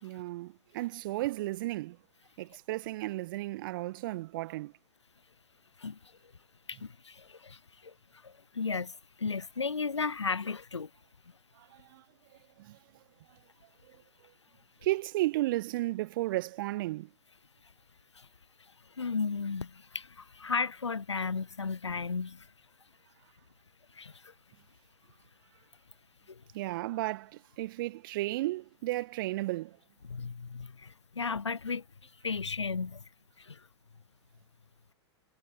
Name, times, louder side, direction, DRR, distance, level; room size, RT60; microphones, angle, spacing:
voice 1, 0.0-2.0 2.4-4.7 11.6-12.0 12.6-12.8 14.8-17.1 26.5-29.8, right 18 dB, 50° right, 1.4 m, -34 dB
voice 2, 6.7-7.9 8.2-10.9 18.1-18.3 19.0-22.5 23.9-24.3 26.3-26.4 30.0-31.8 32.2-33.0 33.4-33.7, left 5 dB, 85° left, 0.6 m, -35 dB
figure-of-eight pair, 95°, 14 cm